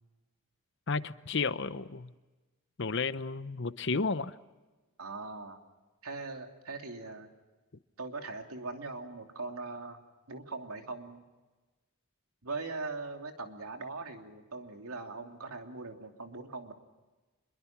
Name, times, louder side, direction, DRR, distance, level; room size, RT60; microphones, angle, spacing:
voice 1, 0.9-2.1 2.8-4.4, left 4 dB, 55° left, 14 dB, 0.8 m, -32 dB
voice 2, 5.0-5.6 6.0-7.3 8.0-10.0 10.3-11.2 12.4-16.7, right 3 dB, 85° right, 4 dB, 3.0 m, -41 dB
26.5 x 22.5 x 6.0 m, 1.2 s
head